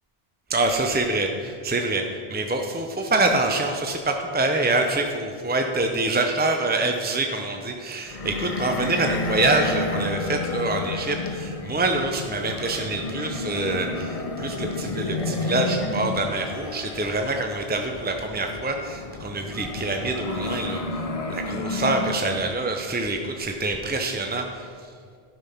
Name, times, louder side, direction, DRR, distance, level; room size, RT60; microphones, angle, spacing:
voice 1, 0.5-2.0 2.3-20.8 21.3-24.7, right 2 dB, 15° right, 3 dB, 0.3 m, -25 dB
sound 1, 8.1-22.6, left 2 dB, 40° left, 0.7 m, -31 dB
12.0 x 5.4 x 5.7 m, 2.1 s
omnidirectional pair, 1.1 m